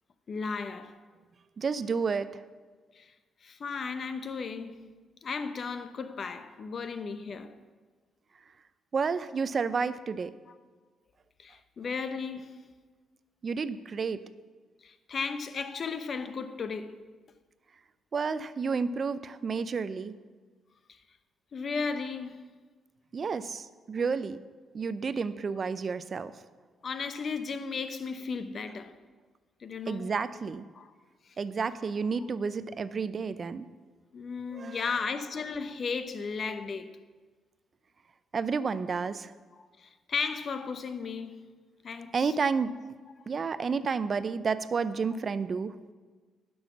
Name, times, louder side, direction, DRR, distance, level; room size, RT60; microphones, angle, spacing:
voice 1, 0.3-1.0 2.9-3.1 3.4-7.6 10.5-10.6 11.4-12.7 14.8-17.0 20.9-21.0 21.5-22.6 26.8-29.0 29.6-30.2 30.7-30.9 31.2-31.3 34.1-36.9 39.5-41.5 41.8-42.3, left 5 dB, 50° left, 0.7 m, -35 dB
voice 2, 1.6-2.4 8.9-10.3 13.4-14.2 18.1-20.1 23.1-24.4 24.7-26.3 29.9-30.6 31.4-33.7 34.5-34.8 38.3-39.3 42.1-43.0 43.3-45.7, right 5 dB, 45° right, 0.5 m, -31 dB
10.5 x 6.3 x 6.0 m
cardioid pair, 90°, 0 cm